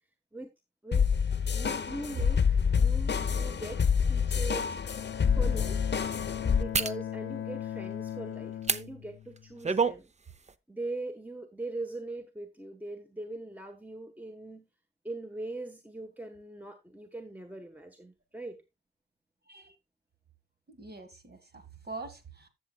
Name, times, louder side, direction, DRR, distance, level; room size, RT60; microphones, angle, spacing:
sound 1, 0.9-6.6, left 6 dB, 55° left, 0.8 m, -27 dB
voice 1, 1.5-3.8 4.1-4.8 5.3-6.1 6.5-10.1 10.7-14.7 15.0-18.6, right 2 dB, 10° right, 5 dB, 1.2 m, -41 dB
sound 2, 3.9-4.0 4.6-4.8 6.7-7.0 8.6-8.8 9.4-10.0 10.4-10.5, right 5 dB, 35° right, 0.6 m, -28 dB
Bowed string instrument, 4.8-9.8, left 11 dB, 75° left, 0.4 m, -39 dB
voice 2, 20.7-22.5, right 3 dB, 50° right, 8 dB, 1.8 m, -44 dB
14.5 x 7.1 x 2.3 m, 0.23 s
cardioid pair, 65°, 21 cm